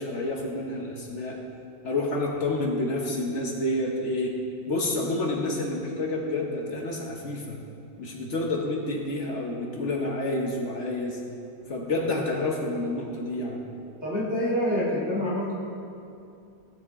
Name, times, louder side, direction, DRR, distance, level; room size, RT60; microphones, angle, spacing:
voice 1, 0.0-1.4 1.8-4.3 4.7-7.6 8.0-11.2 11.7-13.6, left 2 dB, 45° left, 0 dB, 0.9 m, -29 dB
voice 2, 14.0-15.5, equal, 30° right, -7 dB, 2.1 m, -26 dB
15.5 x 7.1 x 3.7 m, 2.6 s
omnidirectional pair, 2.4 m